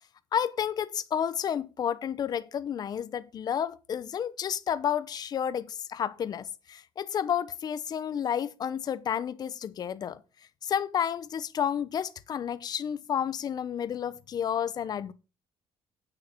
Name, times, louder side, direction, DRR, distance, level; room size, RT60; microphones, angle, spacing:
voice 1, 0.3-10.2 10.6-15.1, left 8 dB, 40° left, 0.8 m, -31 dB
8.9 x 6.3 x 5.8 m
cardioid pair, 160°, 10 cm